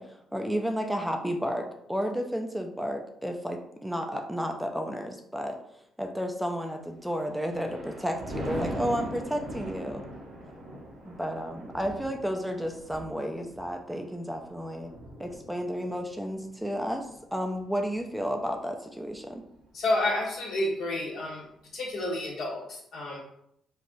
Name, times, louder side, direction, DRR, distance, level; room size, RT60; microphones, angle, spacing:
voice 1, 0.0-5.6 6.0-10.0 11.1-14.9 15.2-19.4, equal, 5° right, 3 dB, 0.3 m, -32 dB
Thunder, 7.1-18.6 19.1-19.4, right 1 dB, 70° right, 0.9 m, -41 dB
voice 2, 19.7-21.4 21.7-23.2, left 1 dB, 70° left, -2 dB, 1.0 m, -30 dB
3.3 x 2.4 x 2.6 m, 0.74 s
cardioid pair, 90°, 0 cm